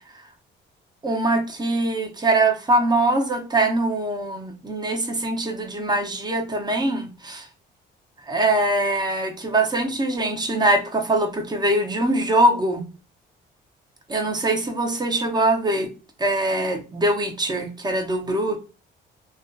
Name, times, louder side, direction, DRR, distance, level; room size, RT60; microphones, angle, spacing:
voice 1, 1.0-7.4 8.3-12.8 14.1-15.9 16.2-18.6, right 1 dB, 20° right, 0.6 m, -22 dB
2.5 x 2.2 x 2.3 m
cardioid pair, 90°, 20 cm